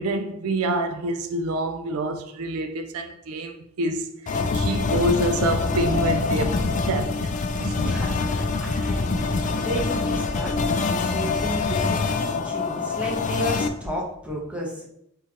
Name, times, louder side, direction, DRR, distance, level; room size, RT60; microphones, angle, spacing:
voice 1, 0.0-7.3 7.6-8.0, right 2 dB, 85° right, 0.4 m, -27 dB
sound 1, 4.3-13.7, left 4 dB, 35° left, 0.3 m, -25 dB
voice 2, 7.8-14.9, equal, 5° right, 1.1 m, -33 dB
4.3 x 3.7 x 2.9 m
head